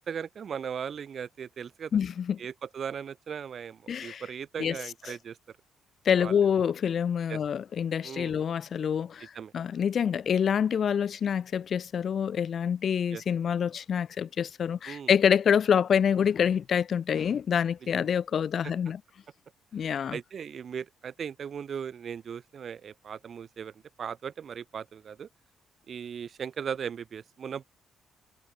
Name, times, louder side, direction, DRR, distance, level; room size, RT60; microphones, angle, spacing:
voice 1, 0.0-1.9 2.4-5.6 6.2-6.4 7.3-7.4 8.0-8.3 9.3-9.5 13.1-13.2 14.9-15.1 17.9-18.1 18.6-18.7 19.8-25.3 25.9-27.6, right 7 dB, 55° right, 2.2 m, -38 dB
voice 2, 1.9-2.4 3.9-4.2 4.6-4.8 5.1-5.2 6.0-19.0 19.7-20.2, left 8 dB, 55° left, 1.4 m, -26 dB
cardioid pair, 90°, 0 cm